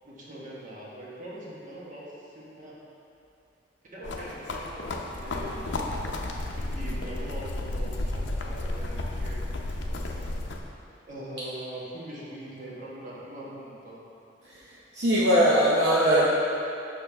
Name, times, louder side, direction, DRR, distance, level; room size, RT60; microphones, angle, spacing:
voice 1, 0.0-2.8 3.9-6.0 6.3-9.4 9.9-10.3 11.1-14.0, right 1 dB, 45° right, -6 dB, 1.3 m, -42 dB
sound 1, 4.0-10.6, left 2 dB, 80° left, 0.6 m, -32 dB
voice 2, 14.4-16.2, equal, 65° right, -8 dB, 0.8 m, -22 dB
6.7 x 5.7 x 3.4 m, 2.7 s
head